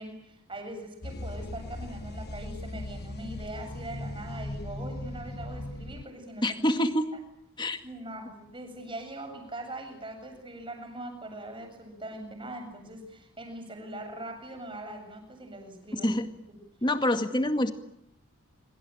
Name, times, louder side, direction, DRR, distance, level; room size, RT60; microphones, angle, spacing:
voice 1, 0.0-6.6 7.8-16.1, right 1 dB, 25° right, 4 dB, 7.6 m, -41 dB
sound 1, 1.0-6.0, left 1 dB, 50° left, 1.3 m, -38 dB
voice 2, 6.4-7.1 7.6-7.8 15.9-16.3 16.8-17.7, left 1 dB, 20° left, 7 dB, 2.2 m, -26 dB
26.0 x 25.0 x 9.0 m, 0.77 s
head